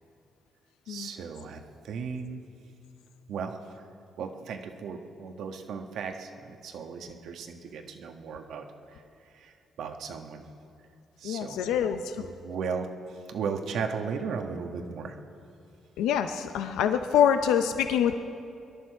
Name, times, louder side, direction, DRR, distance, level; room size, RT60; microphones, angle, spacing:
voice 1, 0.9-2.4 3.3-3.9 4.2-9.0 9.3-10.4 11.2-11.6 12.2-15.2, right 5 dB, 75° right, 5 dB, 1.3 m, -36 dB
voice 2, 11.2-12.2 16.0-18.2, left 9 dB, 90° left, 8 dB, 0.6 m, -25 dB
24.5 x 11.5 x 4.7 m, 2.6 s
cardioid pair, 85°, 0 cm